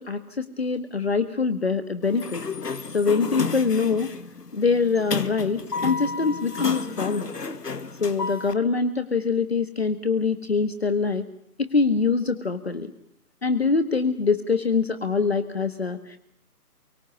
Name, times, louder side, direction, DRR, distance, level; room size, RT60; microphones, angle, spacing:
voice 1, 0.0-2.4 2.9-4.1 4.5-7.3 8.0-11.3 11.6-12.9 13.4-16.2, left 4 dB, 40° left, 10 dB, 1.7 m, -24 dB
Sliding door, 2.0-8.5, left 4 dB, 80° left, 2.5 m, -32 dB
29.0 x 24.5 x 7.1 m, 0.69 s
hypercardioid pair, 180°, 47 cm